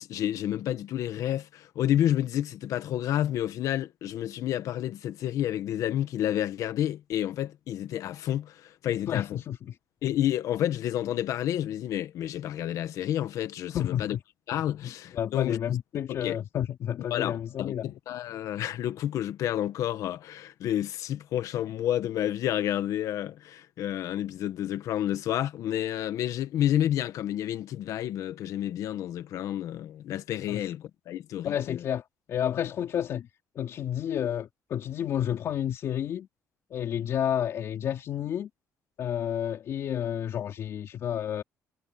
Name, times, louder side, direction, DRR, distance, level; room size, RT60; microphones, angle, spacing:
voice 1, 0.0-9.4 10.0-14.2 14.5-15.8 16.2-16.4 17.1-31.8, left 12 dB, 70° left, 1.3 m, -30 dB
voice 2, 9.1-9.8 13.7-14.2 14.8-17.9 30.5-30.7 31.4-32.0 32.3-33.3 33.6-36.3 36.7-38.5 39.0-41.4, left 10 dB, 55° left, 3.6 m, -30 dB
cardioid pair, 150°, 6 cm